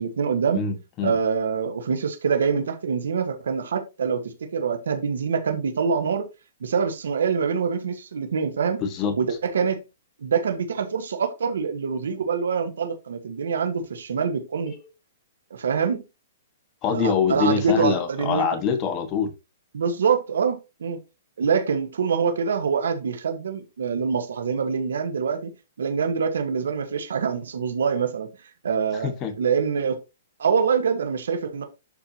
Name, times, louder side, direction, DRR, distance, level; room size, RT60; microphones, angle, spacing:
voice 1, 0.0-0.6 1.0-6.3 6.6-8.8 9.2-9.8 10.2-14.7 15.5-16.0 16.9-18.4 19.7-21.0 21.4-25.5 25.8-28.3 28.6-29.1 29.4-30.0 30.4-31.6, right 6 dB, 85° right, 1.4 m, -25 dB
voice 2, 0.5-1.2 8.8-9.2 14.7-14.9 16.8-19.3 29.0-29.3, left 6 dB, 25° left, 1.5 m, -24 dB
11.0 x 4.5 x 2.9 m
hypercardioid pair, 155°, 0 cm